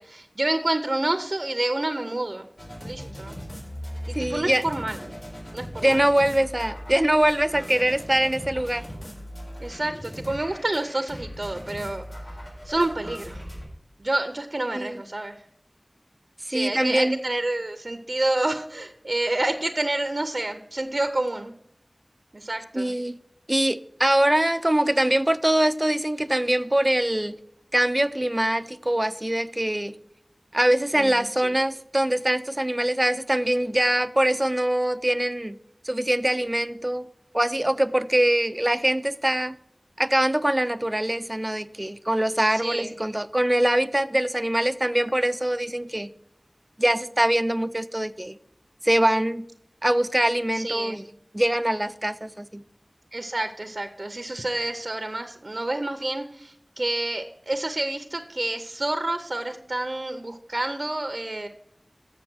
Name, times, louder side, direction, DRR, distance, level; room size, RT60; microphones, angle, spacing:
voice 1, 0.0-2.5 2.8-3.4 4.1-5.1 5.5-6.0 9.6-12.0 12.6-13.4 14.0-15.4 16.5-21.5 22.3-22.9 31.0-31.1 42.5-42.9 50.5-51.0 53.1-61.5, right 2 dB, 60° right, 0.7 m, -28 dB
sound 1, 2.6-13.6, equal, 55° left, 4.2 m, -39 dB
voice 2, 4.1-4.6 5.8-8.9 14.7-15.0 16.5-17.2 22.7-23.2 23.5-27.3 27.7-29.9 30.5-35.6 35.8-37.1 37.3-39.6 40.0-46.1 46.8-48.4 48.8-49.5 49.8-51.0 51.3-52.6, right 1 dB, 25° right, 0.5 m, -23 dB
7.1 x 7.1 x 6.1 m
wide cardioid pair, 45°, 0 cm